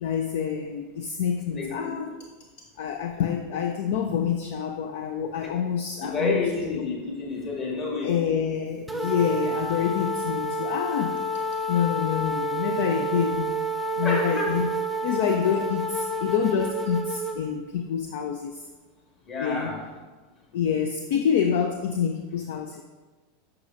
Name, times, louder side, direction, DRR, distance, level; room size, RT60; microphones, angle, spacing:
voice 1, 0.0-2.1 2.8-6.8 8.0-11.2 11.7-13.6 14.0-14.7 15.0-18.6 19.4-19.8 20.5-22.8, left 8 dB, 55° left, 6 dB, 0.4 m, -27 dB
voice 2, 1.5-1.9 6.0-8.1 14.0-14.6 19.3-19.8, left 3 dB, 35° left, -2 dB, 2.0 m, -29 dB
sound 1, 8.9-17.4, right 1 dB, 5° right, 0.6 m, -29 dB
9.5 x 5.9 x 2.5 m, 1.3 s
figure-of-eight pair, 85°, 0 cm